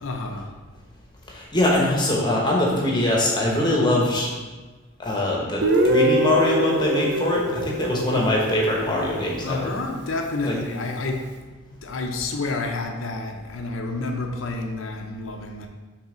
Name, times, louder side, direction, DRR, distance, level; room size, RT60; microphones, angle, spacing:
voice 1, 0.0-0.5 9.4-11.3 11.8-15.7, left 3 dB, 90° left, 2 dB, 0.6 m, -29 dB
voice 2, 1.3-4.3 5.0-9.8 10.4-10.6, left 1 dB, 20° left, -2 dB, 1.0 m, -22 dB
Guitar, 5.6-9.4, right 1 dB, 60° right, 0.5 m, -24 dB
5.4 x 3.4 x 5.0 m, 1.3 s
head